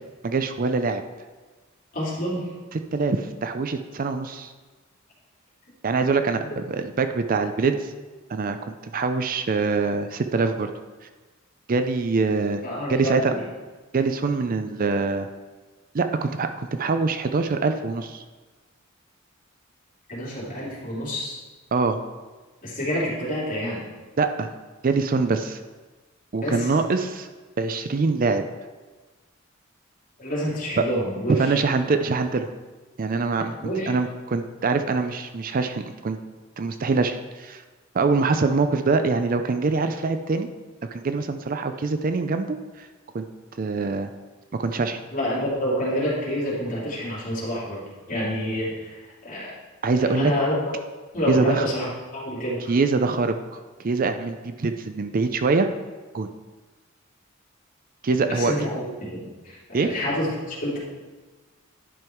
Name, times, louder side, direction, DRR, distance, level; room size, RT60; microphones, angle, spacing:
voice 1, 0.2-1.0 2.7-4.5 5.8-7.9 8.3-10.7 11.7-12.6 12.9-13.3 13.9-15.3 15.9-18.2 21.7-22.0 24.2-24.5 24.8-25.6 26.3-27.3 27.6-28.4 30.8-30.9 31.4-32.5 33.0-33.5 33.9-36.2 36.6-37.6 37.9-40.5 40.9-42.9 43.1-43.3 43.6-44.1 44.6-45.0 49.8-50.3 51.3-51.7 52.7-55.7 56.1-56.3 58.0-58.5 59.7-59.9, right 4 dB, 45° right, 8 dB, 0.5 m, -24 dB
voice 2, 1.9-2.5 6.4-6.5 12.6-13.4 20.1-21.4 22.6-23.9 26.4-26.7 30.2-31.6 33.4-33.9 45.1-49.5 50.0-50.5 51.1-52.7 58.3-60.8, equal, 40° left, -6 dB, 3.0 m, -28 dB
11.0 x 5.4 x 4.5 m, 1.3 s
head